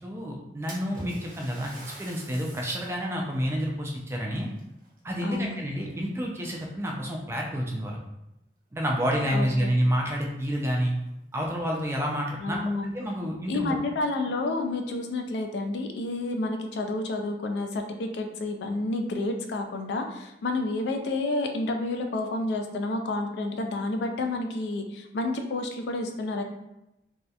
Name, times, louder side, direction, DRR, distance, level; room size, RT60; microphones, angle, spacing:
voice 1, 0.0-1.7 2.0-4.5 5.0-8.0 8.7-10.9 11.3-12.6 12.9-13.8, equal, 15° right, -1 dB, 0.3 m, -29 dB
Splash splatter, 0.7-3.0 3.5-3.6 4.5-5.5 5.9-6.3 7.1-7.2 7.7-7.8 10.0-10.1 10.4-10.5 11.1-11.2 11.6-11.7 12.4-13.0, right 1 dB, 50° right, 0.6 m, -45 dB
voice 2, 5.2-5.6 9.3-9.8 12.4-12.9 13.5-26.4, left 2 dB, 75° left, 4 dB, 0.3 m, -30 dB
2.7 x 2.1 x 2.3 m, 0.89 s
head